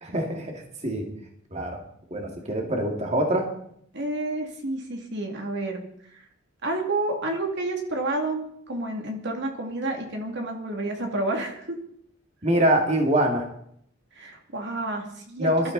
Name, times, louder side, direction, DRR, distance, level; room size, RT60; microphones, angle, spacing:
voice 1, 0.0-1.1 1.5-1.8 2.1-3.5 12.4-13.5 15.4-15.7, right 1 dB, 35° right, 2 dB, 2.4 m, -24 dB
voice 2, 3.9-5.8 6.1-6.2 6.6-11.8 14.2-15.5, right 2 dB, 60° right, 2 dB, 2.5 m, -30 dB
21.5 x 12.5 x 4.1 m, 0.68 s
head